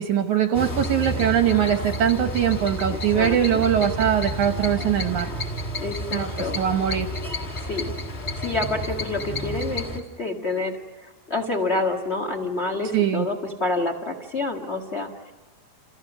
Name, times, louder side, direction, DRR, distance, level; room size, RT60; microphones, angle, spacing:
voice 1, 0.0-5.3 6.1-7.1 12.9-13.3, right 9 dB, 75° right, 6 dB, 1.7 m, -22 dB
sound 1, 0.5-10.0, equal, 20° left, 1.6 m, -30 dB
voice 2, 2.9-3.6 5.8-6.6 7.6-8.0 8.4-15.3, left 2 dB, 60° left, 5 dB, 0.6 m, -28 dB
29.5 x 29.0 x 6.3 m, 1.1 s
omnidirectional pair, 4.8 m